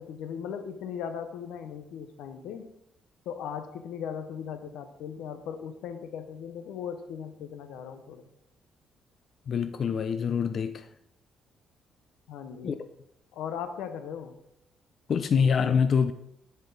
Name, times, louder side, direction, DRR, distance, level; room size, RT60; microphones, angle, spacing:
voice 1, 0.0-2.7 3.3-8.2 12.3-12.8 13.3-14.4, left 7 dB, 90° left, 0.7 m, -38 dB
voice 2, 9.5-10.9 12.6-12.7 15.1-16.1, left 6 dB, 55° left, 0.4 m, -25 dB
9.9 x 4.4 x 3.9 m
cardioid pair, 90°, 0 cm